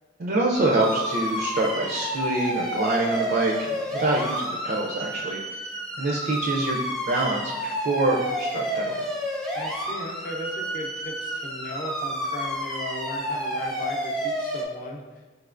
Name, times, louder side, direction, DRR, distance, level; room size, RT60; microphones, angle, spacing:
voice 1, 0.2-5.4 6.0-6.8 7.1-9.0, right 2 dB, 55° right, -1 dB, 0.4 m, -25 dB
sound 1, 0.5-14.6, equal, 5° left, 0.5 m, -30 dB
voice 2, 9.5-15.0, left 1 dB, 50° left, 1 dB, 0.6 m, -36 dB
4.4 x 3.3 x 2.4 m, 1.3 s
head